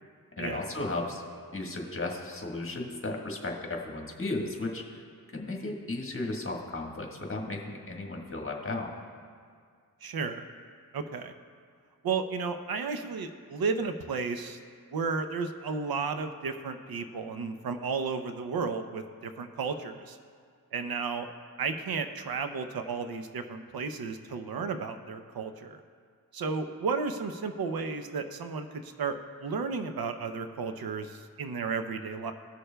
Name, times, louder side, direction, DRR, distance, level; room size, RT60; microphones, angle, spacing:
voice 1, 0.4-1.2 1.5-5.0 5.3-8.9, left 2 dB, 35° left, 0 dB, 1.5 m, -35 dB
voice 2, 10.0-10.4 10.9-11.3 12.0-14.6 14.9-20.2 20.7-21.3 21.6-25.8 26.3-32.3, right 5 dB, 75° right, 8 dB, 0.7 m, -33 dB
19.0 x 6.6 x 2.2 m, 2.1 s
cardioid pair, 65°, 37 cm